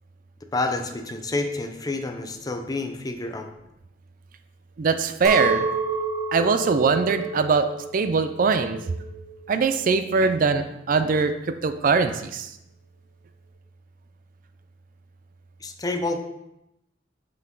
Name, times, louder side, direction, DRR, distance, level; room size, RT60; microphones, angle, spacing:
voice 1, 0.5-3.5 15.6-16.2, left 2 dB, 20° left, 5 dB, 0.5 m, -28 dB
voice 2, 4.8-5.7 6.3-7.7 7.9-8.8 9.5-11.3 11.6-12.5, right 4 dB, 50° right, 9 dB, 0.4 m, -22 dB
Chink clink, 5.2-10.4, right 3 dB, 20° right, 1.5 m, -30 dB
5.5 x 5.4 x 3.8 m, 0.86 s
head